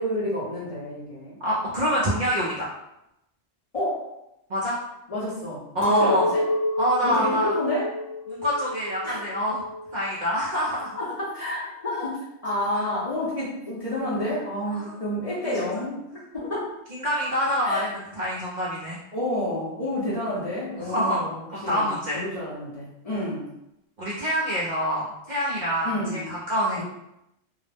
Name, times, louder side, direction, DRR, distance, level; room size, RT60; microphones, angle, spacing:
voice 1, 0.0-1.4 3.7-4.0 5.1-5.6 6.0-6.4 7.0-7.9 9.0-9.2 11.0-16.0 16.3-16.7 17.6-17.9 19.1-23.5 25.8-26.3 26.8-26.9, left 1 dB, 40° left, -7 dB, 0.6 m, -29 dB
voice 2, 1.4-2.7 4.5-4.8 5.7-6.3 6.8-7.5 8.3-9.7 9.9-11.0 12.7-12.8 14.9-15.0 15.4-15.7 16.9-19.0 20.8-22.2 24.0-26.8, equal, 55° right, -6 dB, 0.5 m, -26 dB
Chink clink, 5.8-10.1 10.5-11.1, left 1 dB, 70° left, 0.9 m, -29 dB
2.3 x 2.0 x 3.1 m, 0.86 s
omnidirectional pair, 1.2 m